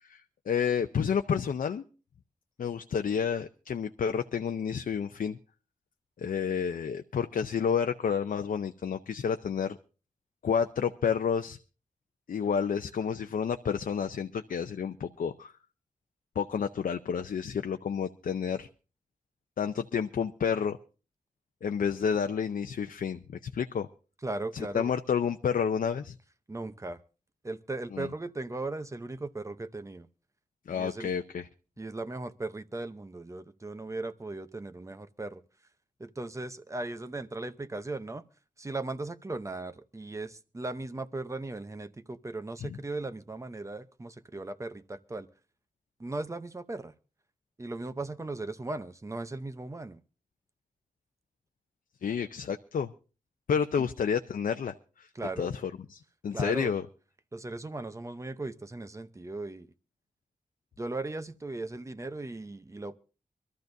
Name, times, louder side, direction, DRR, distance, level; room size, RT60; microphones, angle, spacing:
voice 1, 0.0-1.8 2.6-5.4 6.2-9.8 10.4-11.6 12.3-15.5 16.4-18.7 19.6-20.8 21.6-23.9 24.5-26.1 27.9-28.1 30.7-31.5 42.6-42.8 52.0-52.9 53.5-55.1 55.4-56.9, left 7 dB, 90° left, 0.6 m, -30 dB
voice 2, 24.2-24.9 26.5-27.0 27.4-30.1 30.7-31.1 31.8-35.4 36.0-38.2 38.6-45.3 46.0-46.9 47.6-50.0 55.1-55.5 56.3-56.7 57.3-59.7 60.8-63.0, right 2 dB, 20° right, 0.7 m, -37 dB
24.5 x 13.5 x 2.6 m
wide cardioid pair, 140°, 14 cm